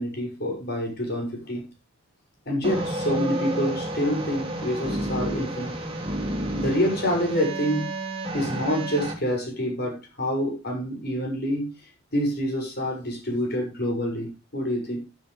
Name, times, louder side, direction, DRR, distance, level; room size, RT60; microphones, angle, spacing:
voice 1, 0.0-1.6 2.5-5.8 6.5-7.9 8.3-11.7 12.1-15.0, equal, 45° left, 0 dB, 7.1 m, -27 dB
sound 1, 2.6-9.1, right 1 dB, 25° right, 2.8 m, -30 dB
15.0 x 10.5 x 3.5 m, 0.28 s
head